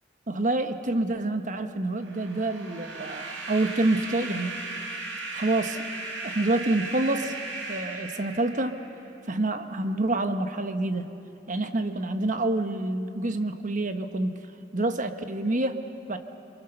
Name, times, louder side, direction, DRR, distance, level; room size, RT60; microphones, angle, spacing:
voice 1, 0.3-4.6 5.3-5.9 6.2-7.4 7.7-8.8 9.3-11.1 11.5-14.4 14.7-16.2, right 2 dB, 40° right, 8 dB, 1.1 m, -27 dB
sound 1, 2.0-9.0, right 3 dB, 75° right, 4.0 m, -37 dB
28.0 x 23.0 x 6.7 m, 2.7 s
head